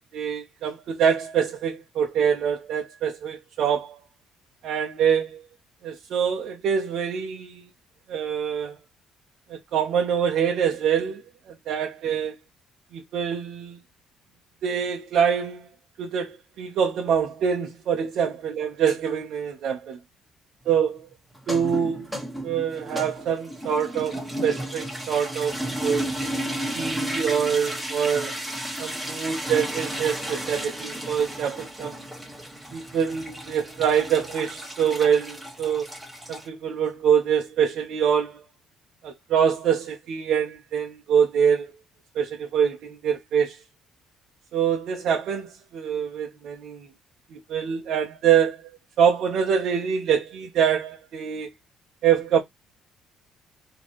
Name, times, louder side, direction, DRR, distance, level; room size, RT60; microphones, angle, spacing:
voice 1, 0.1-4.0 4.6-5.4 5.8-7.7 8.1-8.8 9.5-11.2 11.5-12.4 12.9-13.8 14.6-15.7 16.0-20.0 20.7-21.0 21.5-22.1 22.4-26.1 26.7-28.4 28.8-32.0 32.7-35.9 36.3-38.5 39.0-41.7 42.1-43.6 44.5-46.9 47.3-48.6 49.0-51.5 52.0-52.4, right 8 dB, 65° right, 0.8 m, -25 dB
sound 1, 21.4-36.5, right 1 dB, 5° right, 1.4 m, -33 dB
4.3 x 3.1 x 3.0 m
cardioid pair, 130°, 0 cm